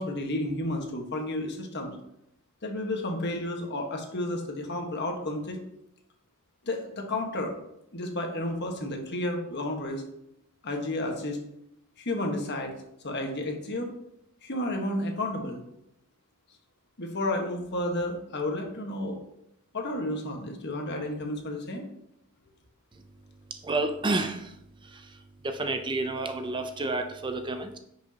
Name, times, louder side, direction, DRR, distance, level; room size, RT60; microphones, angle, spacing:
voice 1, 0.0-1.9 2.6-5.6 6.6-7.5 7.9-10.0 10.6-11.4 12.0-12.7 13.0-13.9 14.4-15.6 17.0-19.2 19.7-21.9, left 1 dB, 50° left, 3 dB, 1.4 m, -31 dB
voice 2, 23.6-24.5 24.9-25.0 25.4-27.8, right 2 dB, 20° right, 7 dB, 0.5 m, -30 dB
10.0 x 6.3 x 2.9 m, 0.80 s
head